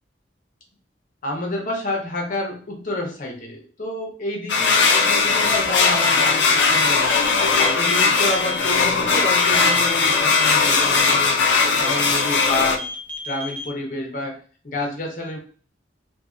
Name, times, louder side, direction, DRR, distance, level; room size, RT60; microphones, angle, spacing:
voice 1, 1.2-7.1 7.7-11.4 11.8-12.8 13.3-14.4 14.6-15.4, left 2 dB, 50° left, 0 dB, 0.8 m, -29 dB
sound 1, 4.5-12.8, left 4 dB, 75° left, 0.4 m, -18 dB
sound 2, 7.1-8.7 9.4-11.2 11.8-13.6, left 1 dB, 10° left, 0.4 m, -31 dB
2.6 x 2.6 x 2.5 m, 0.40 s
head